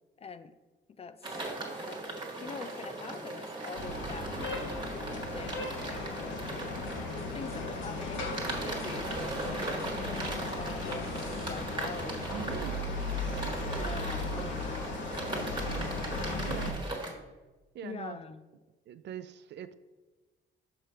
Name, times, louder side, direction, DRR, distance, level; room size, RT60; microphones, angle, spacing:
voice 1, 0.2-0.5 1.0-1.4 1.7-4.4 4.9-6.4 6.7-13.0 13.4-16.0 17.8-18.4, left 5 dB, 30° left, 13 dB, 0.4 m, -45 dB
sound 1, 1.2-17.1, right 2 dB, 25° right, 1.4 m, -39 dB
sound 2, 3.7-16.7, left 2 dB, 70° left, 1.1 m, -37 dB
sound 3, 6.9-12.5, left 4 dB, 90° left, 0.8 m, -49 dB
voice 2, 12.3-12.8 16.4-16.8 17.7-18.2 18.9-19.7, right 9 dB, 60° right, 13 dB, 0.4 m, -42 dB
6.2 x 3.3 x 5.5 m, 1.2 s
cardioid pair, 90°, 20 cm